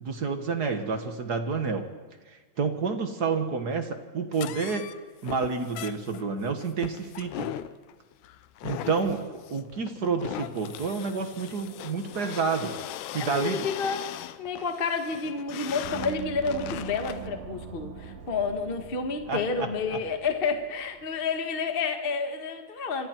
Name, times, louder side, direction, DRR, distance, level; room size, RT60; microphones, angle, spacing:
voice 1, 0.0-1.9 2.6-4.9 5.2-7.5 8.6-12.7 13.1-13.7 19.3-20.0, right 5 dB, 45° right, 7 dB, 1.3 m, -29 dB
sound 1, 4.3-17.3, left 12 dB, 85° left, 2.3 m, -39 dB
voice 2, 13.2-23.1, left 4 dB, 30° left, 6 dB, 1.0 m, -30 dB
Gong, 15.8-21.1, right 7 dB, 85° right, 3.0 m, -43 dB
27.5 x 25.5 x 4.5 m, 1.4 s
omnidirectional pair, 3.5 m